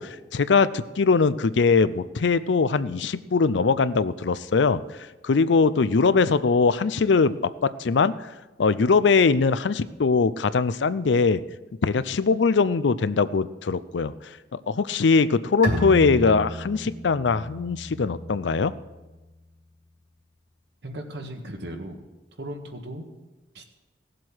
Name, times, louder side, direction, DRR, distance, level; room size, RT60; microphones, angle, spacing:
voice 1, 0.0-4.8 5.2-8.1 8.6-11.4 11.8-14.1 14.7-18.7, left 4 dB, 75° left, 15 dB, 0.5 m, -21 dB
Bowed string instrument, 15.6-19.1, equal, 45° right, 3.0 m, -32 dB
voice 2, 20.8-22.0 22.4-23.1 23.6-23.7, right 1 dB, 65° right, 4 dB, 1.7 m, -36 dB
17.0 x 7.6 x 6.2 m, 1.1 s
head